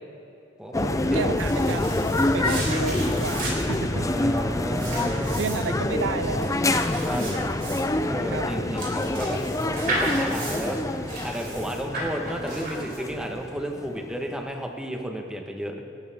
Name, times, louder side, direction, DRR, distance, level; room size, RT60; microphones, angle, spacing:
voice 1, 0.6-1.4 3.9-5.3 7.0-7.2 8.1-9.4 9.9-10.8 11.2-15.8, equal, 5° right, 2 dB, 1.5 m, -32 dB
sound 1, 0.7-14.2, left 1 dB, 15° left, 0.5 m, -26 dB
sound 2, 1.1-13.3, right 2 dB, 50° right, 4.8 m, -35 dB
voice 2, 1.1-1.9 2.3-4.3 5.4-6.6 8.3-8.8, right 5 dB, 90° right, 13 dB, 0.5 m, -32 dB
27.5 x 13.0 x 3.7 m, 2.8 s
head